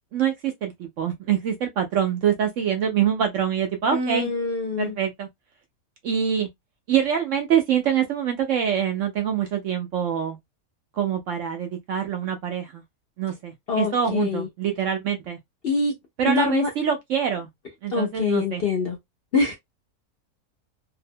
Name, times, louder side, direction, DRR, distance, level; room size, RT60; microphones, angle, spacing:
voice 1, 0.1-4.3 4.8-5.3 6.0-6.5 6.9-10.4 11.0-12.8 13.2-15.4 16.2-17.5 17.8-18.6, right 8 dB, 70° right, 0.8 m, -25 dB
voice 2, 3.9-4.9 13.7-14.5 15.6-15.9 16.3-16.7 17.9-19.0 19.3-19.5, left 4 dB, 55° left, 0.7 m, -24 dB
2.7 x 2.0 x 2.5 m
omnidirectional pair, 1.6 m